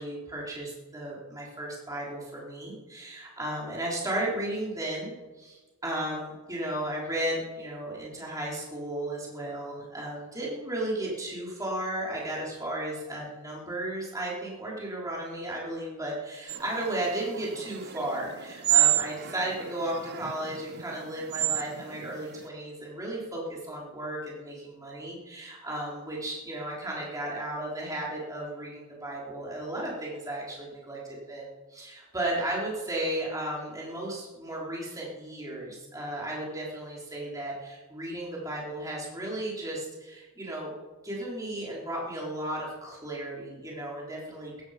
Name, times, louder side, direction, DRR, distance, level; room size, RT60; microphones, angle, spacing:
voice 1, 0.0-40.7 41.0-44.6, right 1 dB, 15° right, -4 dB, 4.2 m, -34 dB
sound 1, 16.5-22.5, right 14 dB, 50° right, 0.6 m, -30 dB
16.0 x 14.5 x 5.3 m, 1.2 s
head